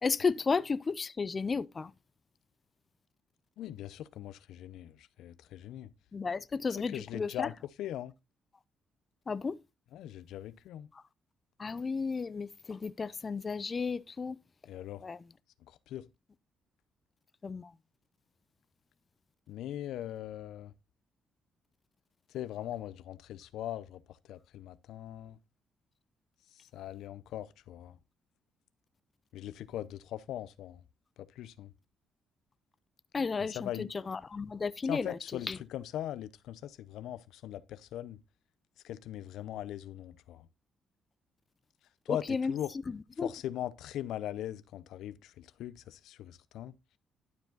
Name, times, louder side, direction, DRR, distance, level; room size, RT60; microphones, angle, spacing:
voice 1, 0.0-1.9 6.1-7.5 9.3-9.6 10.9-11.0 11.6-14.4 15.0-15.2 17.4-17.7 33.1-35.2 35.5-35.6 42.1-42.5 42.9-43.3, left 5 dB, 35° left, 0.4 m, -33 dB
voice 2, 3.6-5.9 6.9-8.1 9.9-10.9 14.7-15.0 15.7-16.1 19.5-20.7 22.3-25.4 26.5-28.0 29.3-30.8 31.2-31.7 33.5-33.9 34.9-38.2 38.8-40.5 42.1-42.7 43.2-46.8, left 12 dB, 85° left, 0.5 m, -40 dB
11.5 x 4.8 x 3.8 m
cardioid pair, 90°, 0 cm